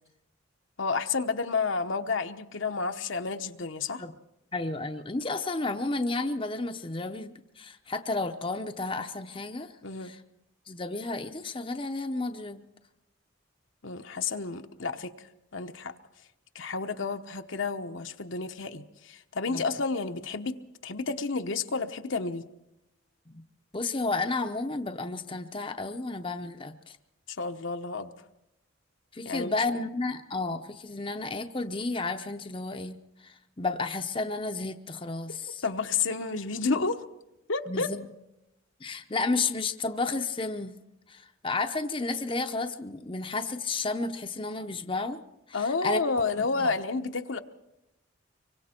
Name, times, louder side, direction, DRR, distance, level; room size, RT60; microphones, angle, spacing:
voice 1, 0.8-4.0 9.8-10.1 13.8-15.1 15.5-15.9 16.5-22.4 27.4-28.1 29.2-29.5 35.6-37.0 37.5-37.9 45.5-47.4, left 4 dB, 70° left, 6 dB, 1.0 m, -30 dB
voice 2, 4.5-9.7 10.0-10.2 10.7-12.6 19.5-19.6 23.3-23.4 23.7-27.0 29.1-35.6 37.7-38.1 38.8-40.8 41.1-45.2 45.5-46.0 46.4-46.7, left 3 dB, 25° left, 6 dB, 0.8 m, -32 dB
25.0 x 23.5 x 4.4 m, 0.91 s
head